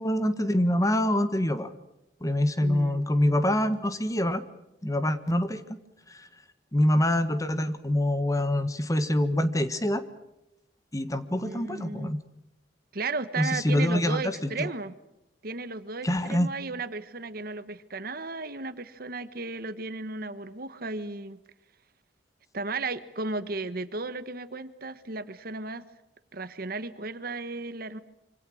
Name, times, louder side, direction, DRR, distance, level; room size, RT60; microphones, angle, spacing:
voice 1, 0.0-1.7 2.2-4.4 4.8-5.6 6.1-6.3 6.7-10.0 10.9-12.2 13.4-14.7 16.0-16.5, left 1 dB, 20° left, 11 dB, 1.5 m, -25 dB
voice 2, 2.6-3.0 11.3-12.2 12.9-14.9 15.4-21.4 22.5-25.8 26.3-28.0, right 3 dB, 55° right, 13 dB, 1.3 m, -35 dB
26.5 x 25.0 x 6.4 m, 0.90 s
head